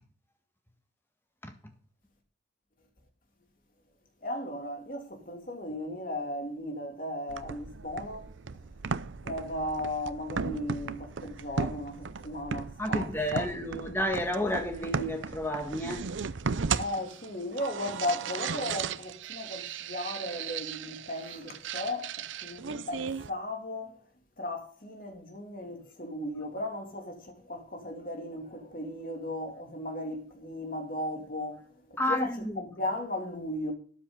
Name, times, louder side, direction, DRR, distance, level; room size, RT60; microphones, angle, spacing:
voice 1, 4.2-8.3 9.2-13.5 16.8-24.0 24.4-33.7, left 1 dB, 45° left, 3.0 m, -36 dB
sound 1, 7.3-23.3, right 5 dB, 85° right, 0.6 m, -36 dB
voice 2, 12.8-16.0 32.0-32.6, left 1 dB, 10° left, 1.8 m, -31 dB
12.5 x 10.5 x 4.0 m
head